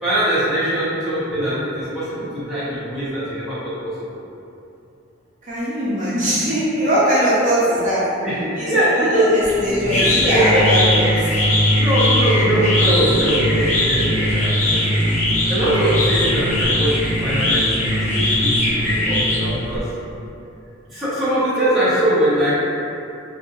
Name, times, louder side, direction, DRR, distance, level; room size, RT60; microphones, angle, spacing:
voice 1, 0.0-3.7 8.2-9.3 10.0-10.9 11.8-15.0 15.5-19.8 20.9-22.5, right 1 dB, ahead, -13 dB, 1.1 m, -22 dB
voice 2, 5.5-8.0 8.6-11.0, equal, 40° right, -10 dB, 0.6 m, -20 dB
sound 1, 9.4-19.8, left 1 dB, 40° left, 0.7 m, -19 dB
2.7 x 2.6 x 3.9 m, 2.7 s
head